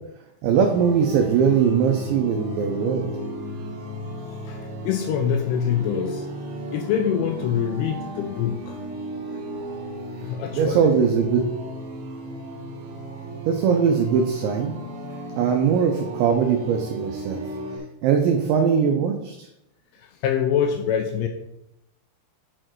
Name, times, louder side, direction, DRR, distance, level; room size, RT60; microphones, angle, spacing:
voice 1, 0.4-3.1 10.5-11.4 13.5-14.7 15.3-17.4 18.0-19.4, right 7 dB, 85° right, 4 dB, 2.5 m, -20 dB
sound 1, 0.5-17.8, right 1 dB, 65° right, 2.0 m, -35 dB
voice 2, 4.8-6.3 6.7-8.8 10.2-10.9 20.0-21.3, left 8 dB, 85° left, 4 dB, 2.8 m, -25 dB
8.7 x 4.4 x 4.6 m, 0.85 s
omnidirectional pair, 6.0 m